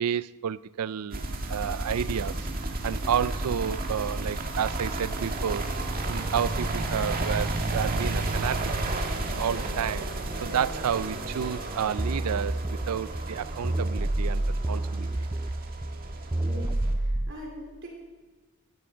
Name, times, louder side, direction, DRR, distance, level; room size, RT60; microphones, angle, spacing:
voice 1, 0.0-2.5 2.8-5.6 6.1-8.7 9.3-10.1 10.4-15.1, right 8 dB, 85° right, 0.4 m, -30 dB
sound 1, 1.1-16.9, right 2 dB, 40° right, 1.7 m, -32 dB
sound 2, 12.0-17.3, right 1 dB, 15° right, 0.4 m, -29 dB
voice 2, 16.4-17.9, left 1 dB, 60° right, 3.6 m, -42 dB
16.5 x 15.0 x 5.1 m
head